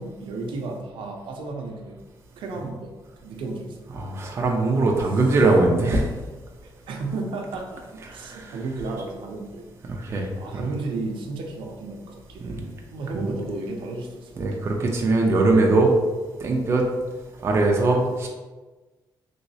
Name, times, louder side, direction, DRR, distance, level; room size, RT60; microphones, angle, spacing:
voice 1, 0.0-2.0 2.4-2.9 3.2-3.8 6.6-7.8 8.1-9.6 10.4-14.6, right 3 dB, 85° right, 1 dB, 0.5 m, -33 dB
voice 2, 3.9-6.1 8.1-8.5 9.9-10.7 12.4-12.6 13.1-13.3 14.4-16.0 16.4-16.8 17.4-18.3, right 2 dB, 30° right, 0 dB, 0.4 m, -21 dB
3.1 x 3.0 x 2.7 m, 1.2 s
cardioid pair, 170°, 8 cm